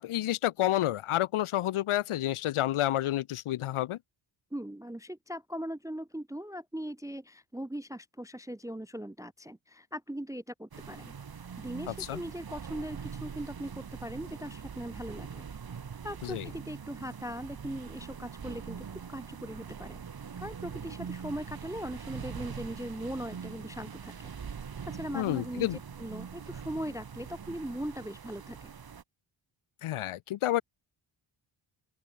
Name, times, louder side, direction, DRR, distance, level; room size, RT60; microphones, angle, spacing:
voice 1, 0.0-4.0 12.1-12.2 16.2-16.5 25.1-25.8 29.8-30.6, left 13 dB, 80° left, 0.7 m, -29 dB
voice 2, 4.5-11.1 11.6-15.5 16.0-20.0 20.4-24.3 24.8-28.7, equal, 10° right, 0.3 m, -40 dB
sound 1, 10.7-29.0, right 6 dB, 45° right, 1.7 m, -43 dB
open air
cardioid pair, 80°, 50 cm